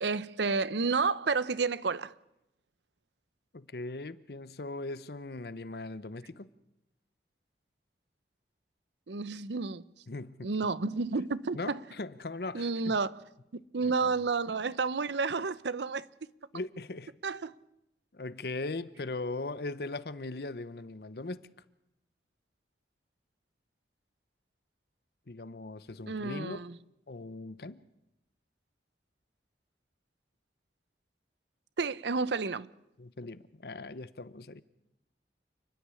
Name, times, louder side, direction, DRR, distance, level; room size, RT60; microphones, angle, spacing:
voice 1, 0.0-2.1 9.1-9.8 10.4-11.8 12.5-13.1 13.5-16.1 17.2-17.5 26.1-26.7 31.8-32.7, right 4 dB, 80° right, 0.7 m, -31 dB
voice 2, 3.5-6.5 10.1-10.5 11.5-13.0 13.8-13.9 14.2-14.3 16.5-17.1 18.1-21.4 25.3-26.6 27.1-27.8 33.0-34.6, left 2 dB, 60° left, 0.8 m, -39 dB
29.0 x 10.5 x 9.6 m
head